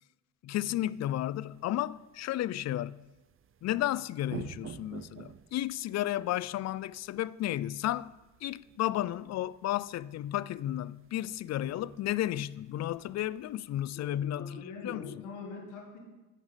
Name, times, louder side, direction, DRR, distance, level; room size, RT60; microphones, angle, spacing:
voice 1, 0.4-3.0 3.6-8.1 8.4-15.2, left 13 dB, 60° left, 0.4 m, -33 dB
sound 1, 0.7-14.1, right 8 dB, 45° right, 0.6 m, -52 dB
voice 2, 14.3-16.0, left 4 dB, 90° left, 2.0 m, -43 dB
10.0 x 7.2 x 8.3 m
cardioid pair, 90°, 30 cm